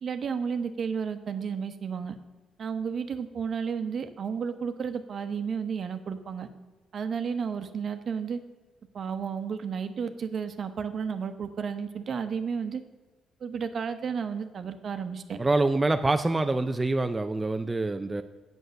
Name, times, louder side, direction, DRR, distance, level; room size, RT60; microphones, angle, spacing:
voice 1, 0.0-2.2 2.6-6.5 6.9-8.4 8.9-12.8 13.4-15.4, right 6 dB, 55° right, 9 dB, 0.9 m, -32 dB
voice 2, 15.4-18.2, right 2 dB, 20° right, 7 dB, 0.5 m, -25 dB
8.1 x 7.9 x 6.4 m, 1.3 s
cardioid pair, 90°, 0 cm